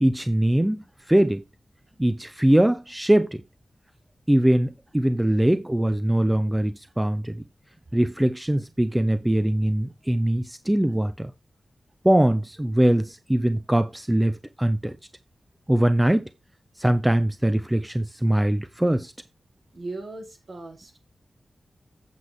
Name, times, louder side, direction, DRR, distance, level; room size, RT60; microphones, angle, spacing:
voice 1, 0.0-1.4 2.0-3.4 4.3-7.4 7.9-11.3 12.0-15.0 15.7-16.3 16.8-19.1, right 1 dB, 10° right, 0.7 m, -22 dB
voice 2, 19.7-21.0, right 2 dB, 60° right, 3.9 m, -37 dB
8.4 x 7.9 x 3.5 m
wide cardioid pair, 110°, 0 cm